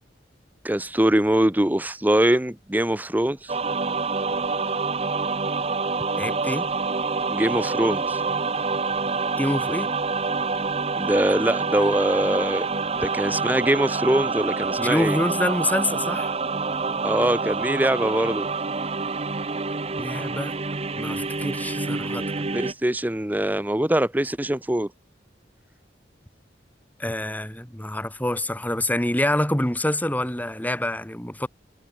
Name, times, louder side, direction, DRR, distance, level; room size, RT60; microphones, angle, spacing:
voice 1, 0.6-3.5 7.3-8.2 11.0-15.2 17.0-18.5 22.4-24.9, right 1 dB, 10° right, 0.7 m, -23 dB
sound 1, 3.5-22.7, right 4 dB, 35° right, 1.0 m, -27 dB
voice 2, 6.2-6.7 9.4-9.9 14.8-16.3 20.0-20.6 21.0-22.2 27.0-31.5, left 1 dB, 10° left, 2.8 m, -26 dB
head